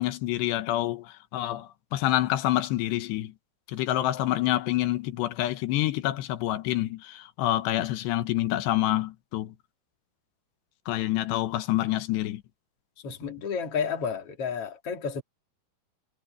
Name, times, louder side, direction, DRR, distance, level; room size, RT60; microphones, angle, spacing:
voice 1, 0.0-3.3 3.7-9.5 10.9-12.4, left 14 dB, 90° left, 3.3 m, -27 dB
voice 2, 13.0-15.2, left 6 dB, 40° left, 3.2 m, -31 dB
omnidirectional pair, 4.9 m